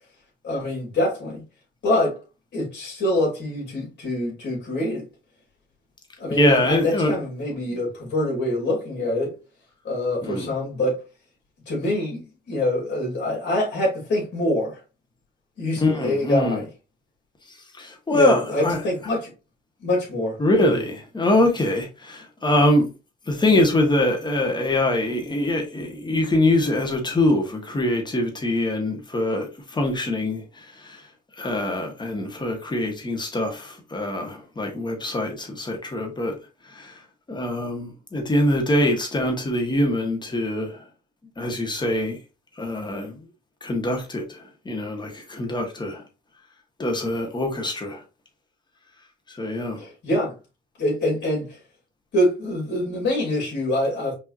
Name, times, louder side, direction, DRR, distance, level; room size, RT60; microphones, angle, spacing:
voice 1, 0.4-1.4 1.8-2.2 2.5-5.0 6.2-9.3 9.8-11.0 11.7-12.2 12.5-14.8 15.6-16.7 18.1-19.3 19.8-20.8 49.8-50.3 50.8-51.6 52.1-54.1, left 1 dB, 60° left, 2.6 m, -25 dB
voice 2, 6.3-7.2 7.7-7.8 10.2-10.5 15.8-16.6 17.7-18.8 20.4-22.9 23.3-31.1 31.4-36.4 36.6-37.0 37.3-40.8 41.4-42.2 42.6-43.3 43.6-46.0 46.8-48.0 49.3-49.8, left 1 dB, 20° left, 1.5 m, -24 dB
5.3 x 3.0 x 2.6 m
cardioid pair, 90°, 20 cm